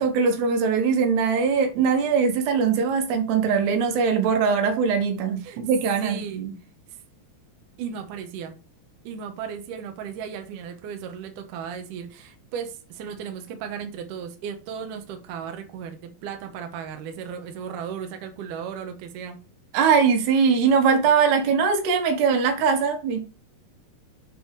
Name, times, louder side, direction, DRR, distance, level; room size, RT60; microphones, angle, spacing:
voice 1, 0.0-6.5 19.7-23.2, right 6 dB, 85° right, 3.6 m, -21 dB
voice 2, 6.0-6.4 7.8-8.5 9.0-19.4, right 7 dB, 65° right, 2.4 m, -35 dB
8.1 x 4.4 x 4.8 m
omnidirectional pair, 4.6 m